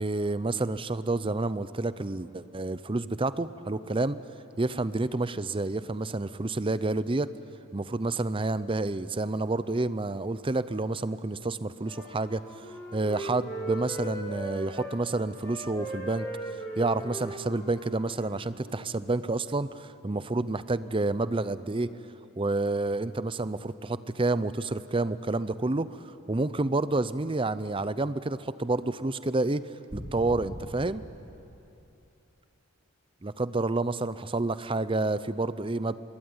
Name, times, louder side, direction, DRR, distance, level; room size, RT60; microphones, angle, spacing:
voice 1, 0.0-4.2 4.6-7.3 7.7-12.4 12.9-16.3 16.8-21.9 22.4-26.0 26.3-31.0 33.2-35.9, right 2 dB, 25° right, 15 dB, 0.6 m, -29 dB
Wind instrument woodwind instrument, 11.8-14.9 15.3-18.8, right 1 dB, 15° left, 5.1 m, -39 dB
sound 1, 29.9-32.0, equal, 45° right, 6.0 m, -42 dB
25.5 x 22.0 x 9.7 m, 2.9 s
head